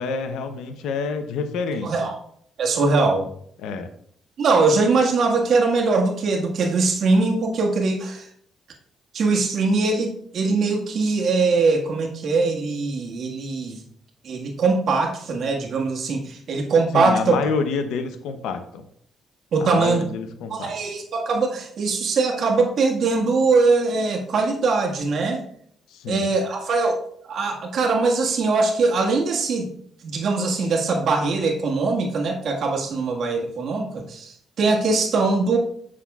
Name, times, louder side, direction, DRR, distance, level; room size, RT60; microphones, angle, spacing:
voice 1, 0.0-2.1 3.6-3.9 16.9-18.9 19.6-20.7 25.9-26.3, left 5 dB, 90° left, 8 dB, 0.7 m, -28 dB
voice 2, 1.8-2.2 2.6-3.3 4.4-8.3 9.1-13.8 14.2-17.4 19.5-20.0 20.5-25.4 26.1-27.0 27.2-29.7 30.0-35.6, right 3 dB, 65° right, 1 dB, 1.5 m, -21 dB
7.4 x 6.1 x 2.3 m, 0.65 s
cardioid pair, 90°, 0 cm